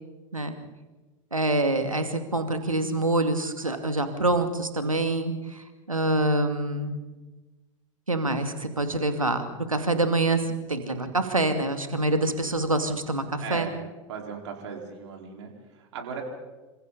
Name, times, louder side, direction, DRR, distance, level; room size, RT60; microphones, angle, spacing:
voice 1, 1.3-7.0 8.1-10.4 10.7-13.7, right 2 dB, 85° right, 8 dB, 2.4 m, -26 dB
voice 2, 13.4-13.7 14.1-15.5 15.8-16.2, right 6 dB, 60° right, 2 dB, 4.7 m, -37 dB
27.5 x 26.5 x 4.2 m, 1.2 s
figure-of-eight pair, 85°, 17 cm